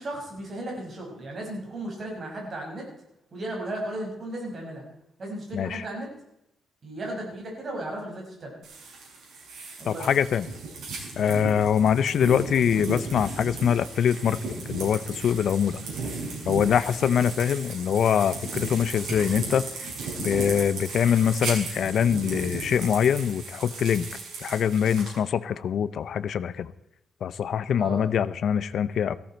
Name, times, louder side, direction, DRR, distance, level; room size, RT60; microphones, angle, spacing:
voice 1, 0.0-2.9 3.3-4.8 5.2-6.1 6.8-8.6 9.8-10.1 27.8-28.0, right 1 dB, 40° right, 0 dB, 5.7 m, -35 dB
voice 2, 5.5-5.8 9.8-10.5 11.2-14.4 14.7-15.8 16.5-19.7 20.2-24.1 24.4-26.7 27.2-29.2, left 8 dB, 60° left, 15 dB, 0.6 m, -24 dB
sound 1, 8.6-25.2, right 3 dB, 90° right, 6.5 m, -36 dB
17.5 x 14.5 x 4.5 m, 0.83 s
cardioid pair, 145°, 0 cm